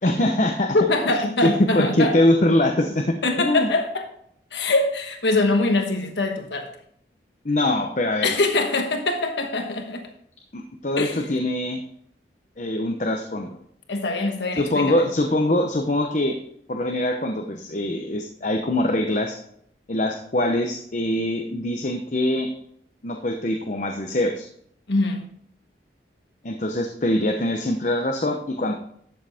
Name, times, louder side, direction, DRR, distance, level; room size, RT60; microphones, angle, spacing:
voice 1, 0.0-0.8 1.1-3.7 7.4-8.3 10.5-11.8 12.6-13.6 14.5-16.4 16.7-19.4 19.9-22.5 23.0-24.5 26.4-28.7, left 1 dB, 45° left, 3 dB, 0.9 m, -23 dB
voice 2, 0.7-2.1 3.2-4.1 4.5-6.7 8.2-10.0 11.0-11.2 13.9-15.0 24.9-25.3, left 2 dB, 85° left, 4 dB, 1.2 m, -23 dB
12.0 x 7.6 x 3.5 m, 0.66 s
head